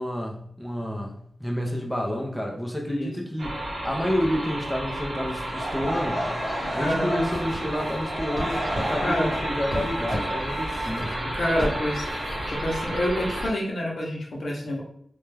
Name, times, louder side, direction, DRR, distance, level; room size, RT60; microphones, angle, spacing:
voice 1, 0.0-6.4 6.7-11.2, equal, ahead, 0 dB, 0.4 m, -29 dB
sound 1, 3.4-13.5, right 1 dB, 75° right, 0.7 m, -31 dB
Laughter / Crowd, 5.4-11.4, equal, 50° left, 0.8 m, -33 dB
voice 2, 6.6-7.2 9.0-9.4 11.3-12.1 12.5-14.8, equal, 75° left, -2 dB, 0.6 m, -27 dB
sound 2, 7.3-12.6, equal, 45° right, 1.0 m, -37 dB
2.2 x 2.1 x 3.1 m, 0.67 s
wide cardioid pair, 130°, 0 cm